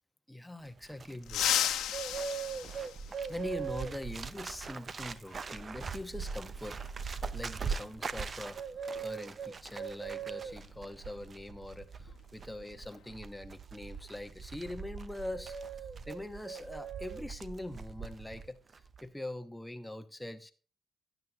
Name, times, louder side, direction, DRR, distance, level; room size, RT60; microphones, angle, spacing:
voice 1, 0.3-1.5 3.3-6.8 7.3-8.6 9.0-15.6 16.1-18.6 19.0-20.5, left 1 dB, 5° left, 0.9 m, -43 dB
Bird, 0.7-18.5 18.7-19.1, right 6 dB, 40° right, 0.6 m, -41 dB
sound 1, 1.2-3.7 5.3-5.4 6.6-6.7 8.4-8.5 8.9-9.1 9.6-11.7 12.0-12.3 12.7-13.1, left 11 dB, 85° left, 0.9 m, -35 dB
12.0 x 9.1 x 2.7 m
cardioid pair, 90°, 0 cm